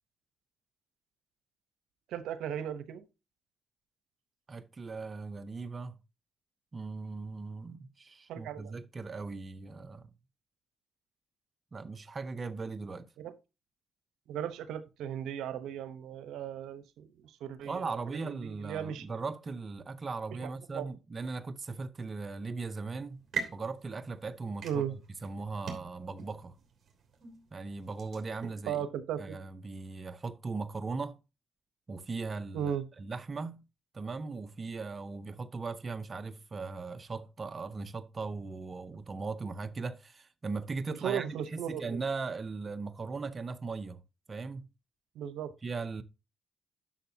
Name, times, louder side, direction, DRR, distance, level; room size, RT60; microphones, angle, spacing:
voice 1, 2.1-3.1 8.3-8.7 13.2-13.3 14.3-19.1 20.4-20.9 24.6-24.9 28.7-29.4 32.5-32.8 41.0-42.0 45.1-45.5, right 9 dB, 85° right, 0.8 m, -36 dB
voice 2, 4.5-6.0 6.7-10.1 11.7-13.1 17.6-23.2 23.5-24.9 25.2-26.5 27.5-28.9 29.2-31.2 31.9-33.6 33.9-44.0 44.3-44.7 45.6-46.0, right 4 dB, 30° right, 0.7 m, -38 dB
sound 1, 23.0-28.7, right 6 dB, 50° right, 3.1 m, -43 dB
11.5 x 6.4 x 2.8 m
cardioid pair, 90°, 0 cm